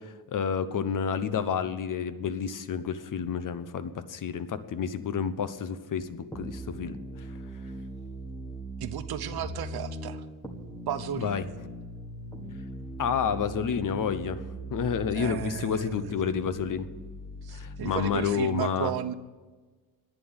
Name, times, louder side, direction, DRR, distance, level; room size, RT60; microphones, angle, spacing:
voice 1, 0.0-7.3 11.1-11.4 13.0-14.4 14.7-16.9 17.5-18.9, left 7 dB, 45° left, 13 dB, 1.0 m, -30 dB
sound 1, 6.3-18.3, right 1 dB, 10° left, 1.9 m, -40 dB
voice 2, 8.8-10.2 10.9-11.6 15.2-16.0 17.4-19.1, right 10 dB, 60° right, 11 dB, 1.0 m, -34 dB
11.0 x 9.5 x 8.8 m, 1.3 s
cardioid pair, 120°, 43 cm